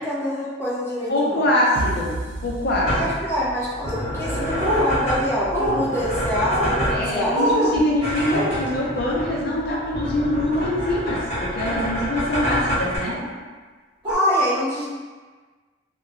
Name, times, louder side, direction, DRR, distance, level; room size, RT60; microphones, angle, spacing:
voice 1, 0.0-1.5 2.9-7.4 14.1-14.9, equal, 15° left, -8 dB, 0.7 m, -25 dB
voice 2, 1.1-2.1 2.4-3.0 6.9-13.2, left 1 dB, 60° left, -4 dB, 0.6 m, -23 dB
sound 1, 1.7-3.6, right 2 dB, 70° right, 0.4 m, -32 dB
sound 2, 2.3-13.0, equal, 35° left, 1.0 m, -28 dB
sound 3, 4.6-4.9 5.5-5.8 6.5-6.7 7.3-7.7 8.3-8.5 10.5-10.7 11.5-11.8 13.1-13.2 14.0-14.1, equal, 25° right, 0.9 m, -24 dB
2.9 x 2.2 x 2.5 m, 1.4 s
head